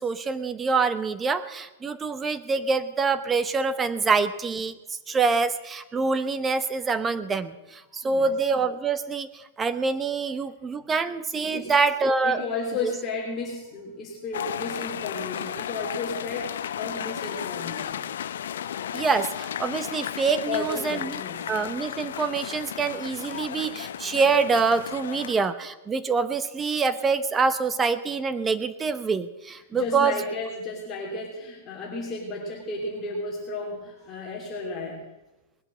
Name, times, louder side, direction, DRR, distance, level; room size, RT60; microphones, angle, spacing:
voice 1, 0.0-12.4 12.8-12.9 18.9-21.2 21.5-30.2, right 4 dB, 15° right, 12 dB, 0.8 m, -25 dB
voice 2, 12.2-18.1 20.5-21.4 29.7-35.0, left 3 dB, 25° left, -3 dB, 3.2 m, -33 dB
sound 1, 14.3-25.4, left 9 dB, 80° left, 0.7 m, -34 dB
20.0 x 8.1 x 7.5 m, 1.0 s
supercardioid pair, 155°, 0 cm